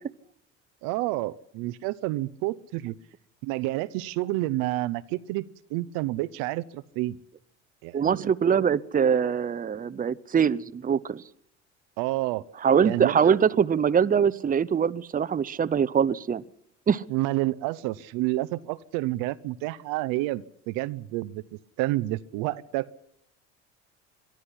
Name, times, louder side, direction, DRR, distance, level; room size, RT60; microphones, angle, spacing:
voice 1, 0.8-2.9 3.4-5.4 5.7-7.2 7.8-8.3 12.0-12.5 12.8-13.4 17.1-21.4 21.8-23.0, right 18 dB, 70° right, 0.8 m, -29 dB
voice 2, 7.9-11.2 12.6-16.4 16.9-17.0, right 7 dB, 25° right, 0.8 m, -23 dB
22.5 x 12.5 x 10.0 m
hypercardioid pair, 70°, 34 cm